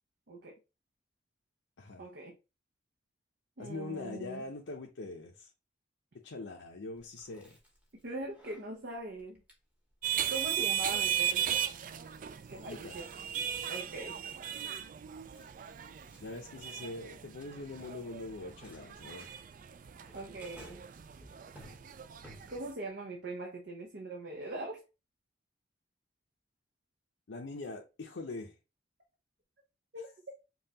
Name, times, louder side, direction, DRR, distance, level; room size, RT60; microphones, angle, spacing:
voice 1, 0.3-0.6 2.0-2.4 3.6-4.4 8.0-9.4 10.3-11.6 12.5-13.1 13.7-14.2 20.1-20.8 22.5-24.8 29.9-30.1, right 2 dB, 60° right, 0.7 m, -41 dB
voice 2, 3.6-5.5 6.1-7.6 12.7-13.0 16.2-19.3 27.3-28.5, left 2 dB, 80° left, 0.6 m, -43 dB
Chewing mastication, 7.0-22.9, equal, 5° right, 0.9 m, -60 dB
sound 1, 10.0-22.7, right 9 dB, 45° right, 0.3 m, -37 dB
5.4 x 2.3 x 2.8 m
head